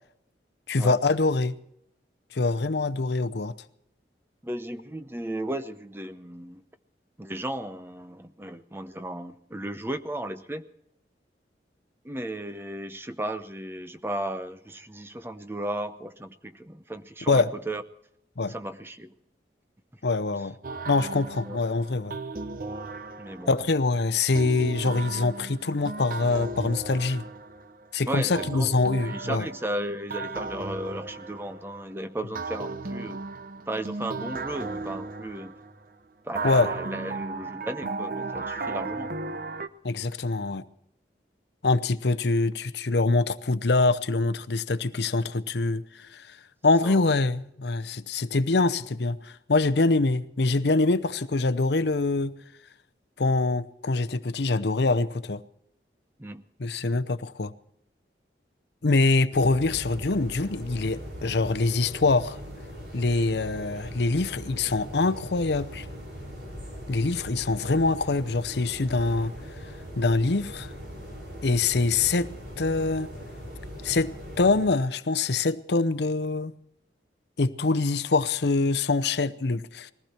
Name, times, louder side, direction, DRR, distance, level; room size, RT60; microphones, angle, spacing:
voice 1, 0.7-1.6 2.3-3.5 17.3-17.5 18.4-18.5 20.0-20.6 20.9-22.2 23.5-27.2 27.9-29.4 36.4-36.7 39.8-40.6 41.6-46.4 46.6-52.3 53.2-55.4 56.6-57.5 58.8-62.4 62.9-65.9 66.9-69.3 70.0-70.7 71.4-72.3 72.6-73.1 73.8-76.5 77.4-79.9, left 3 dB, 70° left, 0.7 m, -24 dB
voice 2, 4.4-6.6 7.2-10.7 12.0-17.8 18.5-19.1 21.5-21.6 23.2-23.5 28.1-33.2 33.7-35.5 36.2-39.1 46.8-47.1 56.2-56.4, right 1 dB, 15° right, 0.7 m, -35 dB
sound 1, 20.6-23.7 24.3-27.9 28.3-31.9 32.3-35.8 36.3-39.7, right 3 dB, 50° right, 0.8 m, -35 dB
sound 2, 59.3-74.7, equal, 65° right, 5.4 m, -40 dB
20.5 x 15.0 x 4.4 m
head